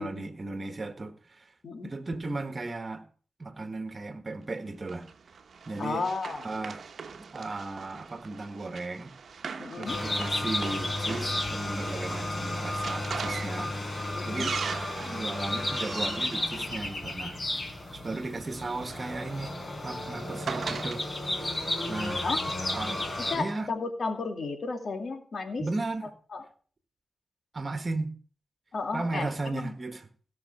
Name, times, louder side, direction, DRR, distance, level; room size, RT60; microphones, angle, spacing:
voice 1, 0.0-1.5 1.8-3.0 3.4-5.1 5.7-6.1 6.4-6.8 7.3-9.1 9.8-13.7 14.3-14.6 14.9-19.6 19.8-21.5 21.9-23.0 23.3-23.7 25.6-26.1 27.5-28.1 28.9-30.1, right 2 dB, 45° right, 1.6 m, -36 dB
Run, 4.9-17.5 18.5-21.0, right 5 dB, 70° right, 1.0 m, -40 dB
voice 2, 5.8-6.4 9.6-10.0 14.1-14.5 22.2-22.4 23.3-25.6 26.3-26.4 28.7-29.7, left 4 dB, 65° left, 2.2 m, -33 dB
sound 1, 9.9-23.4, left 1 dB, 35° left, 4.5 m, -33 dB
16.5 x 5.9 x 5.6 m
cardioid pair, 50°, 0 cm